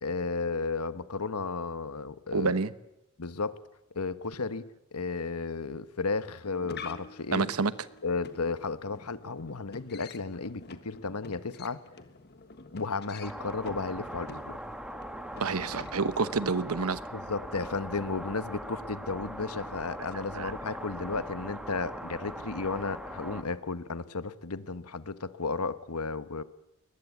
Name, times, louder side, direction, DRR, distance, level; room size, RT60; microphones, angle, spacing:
voice 1, 0.0-2.5 3.2-3.6 3.9-4.6 4.9-7.5 8.0-11.8 12.7-14.6 17.1-26.4, left 4 dB, 85° left, 1.2 m, -33 dB
voice 2, 2.3-2.7 7.3-7.7 15.4-17.0 20.3-20.5, right 4 dB, 80° right, 1.0 m, -28 dB
sound 1, 6.3-16.3, left 4 dB, 50° left, 1.5 m, -49 dB
sound 2, 13.2-23.4, equal, 5° right, 1.5 m, -41 dB
22.0 x 20.0 x 8.5 m
head